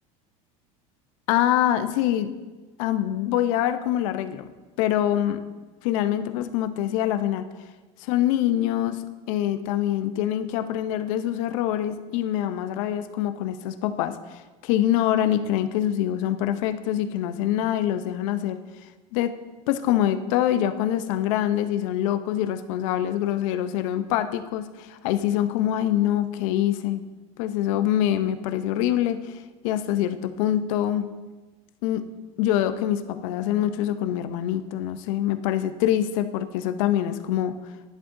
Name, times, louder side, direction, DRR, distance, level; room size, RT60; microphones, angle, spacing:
voice 1, 1.3-2.3 2.8-4.5 4.8-5.4 5.8-7.4 8.0-9.0 9.3-18.6 19.1-19.3 19.7-27.0 27.4-29.4 29.6-31.1 31.8-32.0 32.4-37.5, left 11 dB, 75° left, 10 dB, 0.7 m, -25 dB
11.0 x 10.5 x 2.7 m, 1.2 s
supercardioid pair, 115°, 17 cm